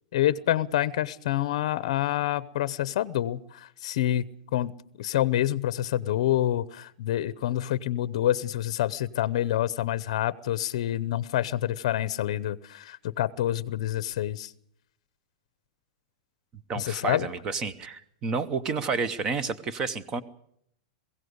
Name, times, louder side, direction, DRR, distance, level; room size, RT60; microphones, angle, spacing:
voice 1, 0.1-4.3 4.5-14.5 16.8-17.3, left 12 dB, 50° left, 18 dB, 0.7 m, -27 dB
voice 2, 16.7-20.2, right 4 dB, 15° right, 14 dB, 0.8 m, -30 dB
21.5 x 16.5 x 8.0 m, 0.72 s
supercardioid pair, 180°, 4 cm